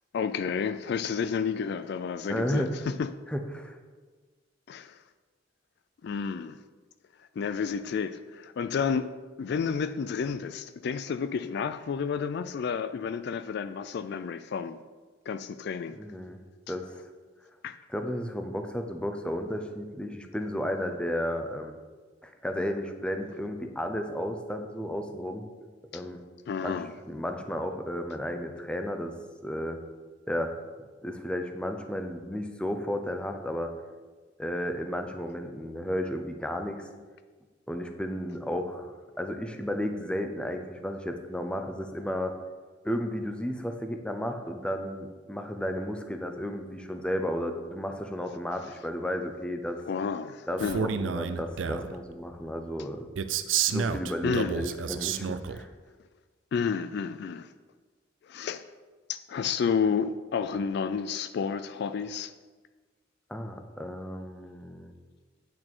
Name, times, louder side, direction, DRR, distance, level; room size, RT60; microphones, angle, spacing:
voice 1, 0.1-3.1 4.7-5.0 6.0-6.6 7.4-9.1 9.4-14.8 15.3-16.0 17.6-17.8 25.9-26.0 26.5-26.9 49.8-50.9 54.2-54.6 56.5-57.5 58.3-58.6 59.1-62.3, left 6 dB, 60° left, 0.3 m, -31 dB
voice 2, 2.3-2.8 3.3-3.8 16.0-16.4 16.7-16.9 17.9-21.8 22.2-25.5 25.9-26.2 26.6-26.7 27.1-29.1 29.4-29.8 30.3-30.5 31.0-33.7 34.4-36.9 37.7-38.9 39.2-42.3 42.8-49.8 50.5-53.1 53.7-55.7 63.3-64.9, equal, 5° left, 0.6 m, -33 dB
Male speech man speaking, 50.6-51.9 53.2-55.6, right 7 dB, 80° right, 0.5 m, -30 dB
8.7 x 6.2 x 4.4 m
head